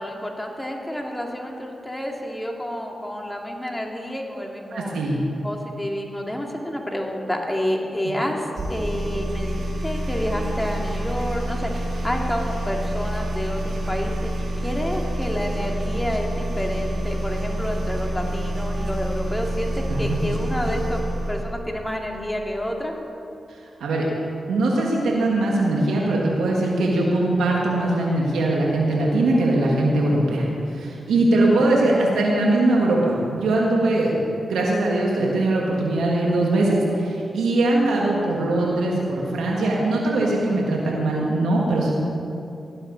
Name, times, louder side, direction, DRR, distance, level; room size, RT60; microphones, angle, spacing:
voice 1, 0.0-4.9 5.4-14.3 14.6-21.0 21.3-22.9, equal, 10° left, 0 dB, 2.4 m, -29 dB
voice 2, 4.7-5.2 19.9-20.2 23.8-24.1 24.5-34.1 34.5-41.9, right 2 dB, 90° right, -3 dB, 1.7 m, -21 dB
sound 1, 8.5-21.5, right 1 dB, 70° right, 2.1 m, -27 dB
17.0 x 11.5 x 4.0 m, 2.7 s
supercardioid pair, 45°, 0 cm